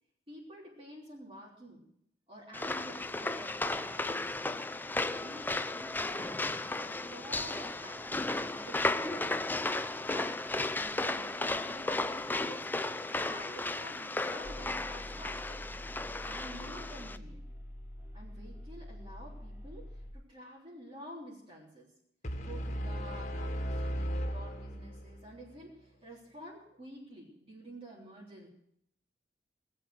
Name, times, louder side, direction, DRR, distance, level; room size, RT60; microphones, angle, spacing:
voice 1, 0.3-1.8 2.3-4.5 5.2-6.3 6.7-9.3 9.9-10.4 10.8-12.7 13.1-15.6 16.2-17.4 18.1-21.9 22.4-28.5, equal, 35° right, -4 dB, 3.5 m, -50 dB
sound 1, 2.5-17.2, left 2 dB, 10° left, 0.5 m, -34 dB
sound 2, 14.4-20.1, left 1 dB, 15° right, 3.5 m, -46 dB
sound 3, 22.2-25.3, equal, 45° left, 1.7 m, -36 dB
19.0 x 7.7 x 7.7 m, 0.74 s
head